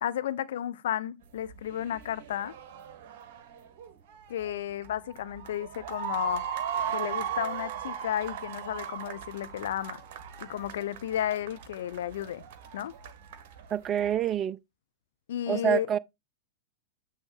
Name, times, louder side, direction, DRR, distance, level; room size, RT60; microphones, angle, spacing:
voice 1, 0.0-2.5 4.3-6.4 6.9-10.0 10.4-12.4 12.7-12.9 15.3-15.9, left 11 dB, 55° left, 0.5 m, -33 dB
sound 1, 1.2-14.3, right 9 dB, 45° right, 1.1 m, -38 dB
voice 2, 13.7-14.6 15.5-16.0, right 9 dB, 25° right, 0.4 m, -27 dB
8.8 x 3.5 x 4.7 m
figure-of-eight pair, 95°, 0 cm